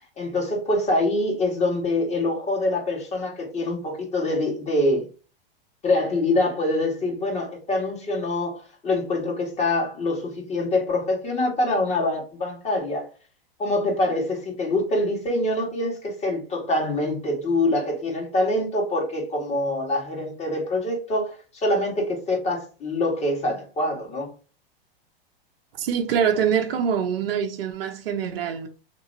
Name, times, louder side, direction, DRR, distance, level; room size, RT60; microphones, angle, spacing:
voice 1, 0.2-5.1 5.8-13.1 13.6-24.3, left 2 dB, 20° left, 1.6 m, -25 dB
voice 2, 25.8-28.7, right 8 dB, 75° right, 0.7 m, -24 dB
3.0 x 2.8 x 2.6 m
hypercardioid pair, 125°, 29 cm